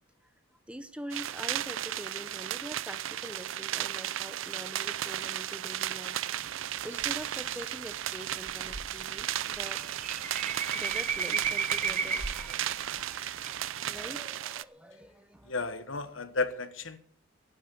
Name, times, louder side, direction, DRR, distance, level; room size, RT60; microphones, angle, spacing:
voice 1, 0.7-6.2 6.8-9.8 10.7-15.5, right 1 dB, 5° right, 11 dB, 0.7 m, -44 dB
sound 1, 1.1-14.6, right 12 dB, 65° right, 0.5 m, -35 dB
sound 2, 6.4-14.1, right 6 dB, 35° right, 1.0 m, -35 dB
voice 2, 15.5-17.0, left 3 dB, 65° left, 11 dB, 1.3 m, -33 dB
11.5 x 9.8 x 8.6 m, 0.62 s
head